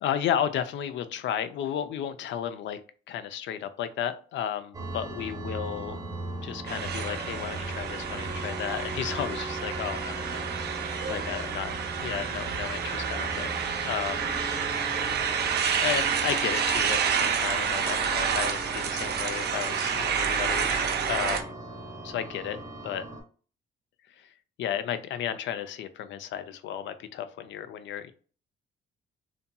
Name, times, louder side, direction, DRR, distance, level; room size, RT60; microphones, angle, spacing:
voice 1, 0.0-2.8 3.1-6.0 6.4-13.6 13.8-14.3 15.8-21.5 22.0-22.6 22.8-23.0 24.2-24.3 24.6-28.1, left 9 dB, 70° left, 0.4 m, -33 dB
sound 1, 4.7-23.2, right 1 dB, 20° right, 0.7 m, -39 dB
sound 2, 6.7-21.4, right 7 dB, 55° right, 0.5 m, -29 dB
2.7 x 2.6 x 2.2 m
cardioid pair, 90°, 20 cm